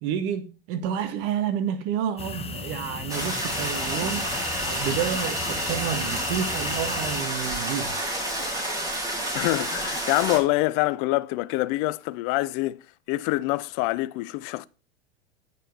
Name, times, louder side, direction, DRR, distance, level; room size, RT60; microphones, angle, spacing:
voice 1, 0.0-4.2 4.6-7.9, right 9 dB, 55° right, 1.9 m, -29 dB
sound 1, 2.2-7.2, left 5 dB, 20° left, 1.2 m, -34 dB
sound 2, 3.1-10.4, right 1 dB, 10° right, 3.5 m, -29 dB
voice 2, 9.3-12.8 13.1-14.6, left 19 dB, 50° left, 0.6 m, -25 dB
9.1 x 5.5 x 6.7 m
hypercardioid pair, 100°, 32 cm